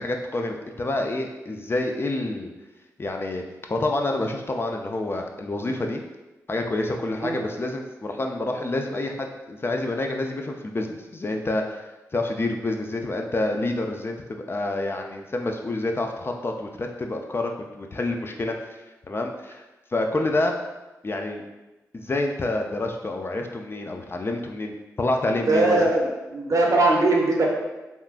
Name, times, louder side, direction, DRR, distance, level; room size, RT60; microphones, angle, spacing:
voice 1, 0.0-2.5 3.0-3.4 3.7-6.0 6.5-11.9 12.1-18.5 19.1-19.6 19.9-20.6 21.0-21.4 21.9-25.8, left 2 dB, 35° left, 3 dB, 0.4 m, -28 dB
voice 2, 25.5-27.5, right 2 dB, 55° right, 0 dB, 0.6 m, -20 dB
3.5 x 2.4 x 2.4 m, 1.1 s
cardioid pair, 45°, 6 cm